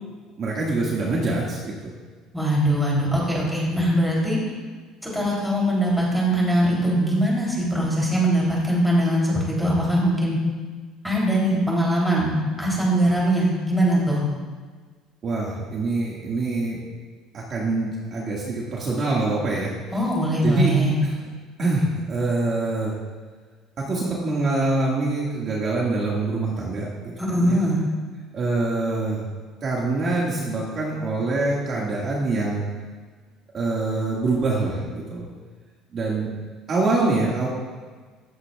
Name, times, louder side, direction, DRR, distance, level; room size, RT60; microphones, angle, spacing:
voice 1, 0.4-1.9 15.2-16.8 17.3-19.7 20.4-20.7 21.0-21.1 21.6-22.9 23.9-27.6 28.3-29.3 29.6-32.7 33.5-35.3 35.9-36.3 36.7-37.5, right 2 dB, 35° right, -4 dB, 2.0 m, -25 dB
voice 2, 2.3-4.4 5.0-10.4 11.0-14.2 19.9-20.9 27.2-27.8, right 1 dB, ahead, -5 dB, 3.3 m, -21 dB
14.5 x 14.0 x 2.4 m, 1.5 s
cardioid pair, 165°, 0 cm